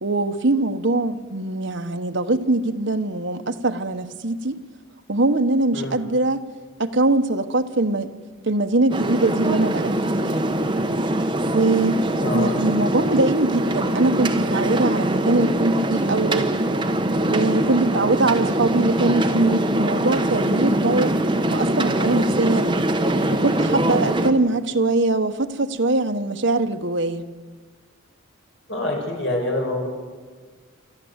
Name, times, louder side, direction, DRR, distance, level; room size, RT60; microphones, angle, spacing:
voice 1, 0.0-4.6 5.1-6.4 6.8-8.1 8.4-10.5 11.5-16.5 17.2-21.1 21.5-22.7 23.3-27.2, right 2 dB, 60° right, 1.2 m, -22 dB
sound 1, 8.9-24.3, right 1 dB, 20° right, 1.2 m, -23 dB
voice 2, 12.2-12.6 28.7-29.9, left 1 dB, 55° left, 5.3 m, -26 dB
27.5 x 13.5 x 8.1 m
head